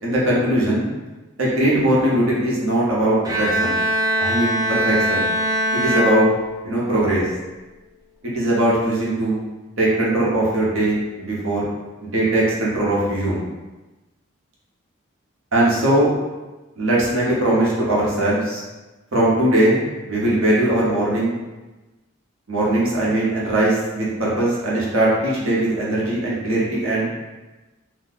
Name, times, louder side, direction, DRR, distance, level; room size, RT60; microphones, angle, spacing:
voice 1, 0.0-0.9 1.4-3.7 4.2-5.2 5.7-6.3 6.6-7.3 8.2-9.4 9.8-11.7 12.0-13.4 15.5-16.1 16.8-18.6 19.1-19.8 20.1-21.3 22.5-27.1, right 1 dB, 80° right, -6 dB, 1.0 m, -20 dB
Bowed string instrument, 3.2-7.0, equal, 15° right, 0.5 m, -22 dB
2.7 x 2.4 x 4.0 m, 1.1 s
head